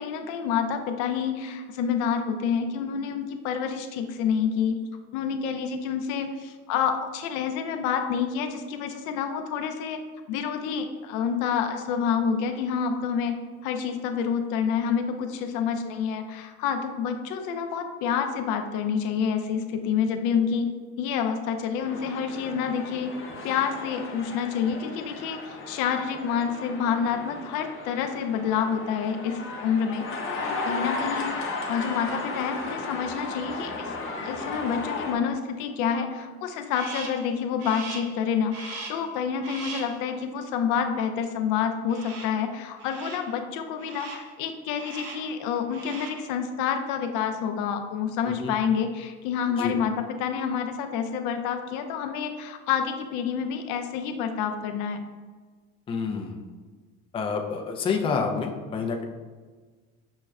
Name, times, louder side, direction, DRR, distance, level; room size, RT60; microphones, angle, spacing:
voice 1, 0.0-4.8 5.1-10.0 10.3-20.7 21.0-23.1 23.4-31.3 31.7-33.9 34.2-55.0, left 7 dB, 80° left, 6 dB, 0.5 m, -28 dB
sound 1, 21.8-35.1, left 3 dB, 40° left, 0.7 m, -35 dB
Crow, 36.7-37.3 37.6-38.2 38.5-39.1 39.4-40.0 41.9-42.4 42.8-43.3 43.8-44.3 44.8-45.3 45.6-46.3, right 3 dB, 50° right, 0.7 m, -39 dB
voice 2, 55.9-56.4 57.1-59.0, left 5 dB, 20° left, 2 dB, 0.3 m, -28 dB
6.2 x 2.1 x 2.3 m, 1.4 s
supercardioid pair, 105°, 31 cm